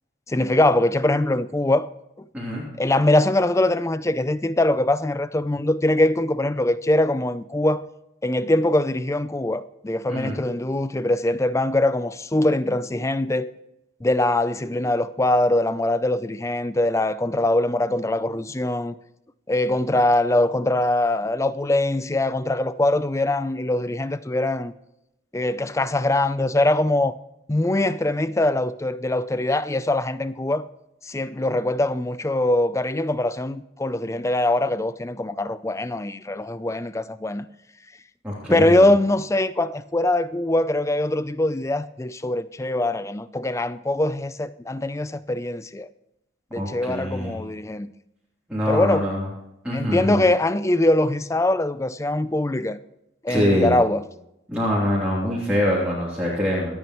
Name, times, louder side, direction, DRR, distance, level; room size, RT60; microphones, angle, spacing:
voice 1, 0.3-1.9 2.2-2.3 2.8-7.9 8.2-13.5 14.0-18.9 19.5-24.7 25.3-27.2 27.5-30.6 31.0-37.5 38.5-45.9 46.5-47.9 48.7-49.1 49.7-52.8 53.2-54.0, left 1 dB, 15° left, 0.4 m, -22 dB
voice 2, 38.2-38.9 46.5-47.4 48.5-49.2 49.6-50.2 53.3-53.7 54.5-56.8, left 1 dB, 5° right, 3.2 m, -24 dB
26.5 x 9.2 x 3.1 m
head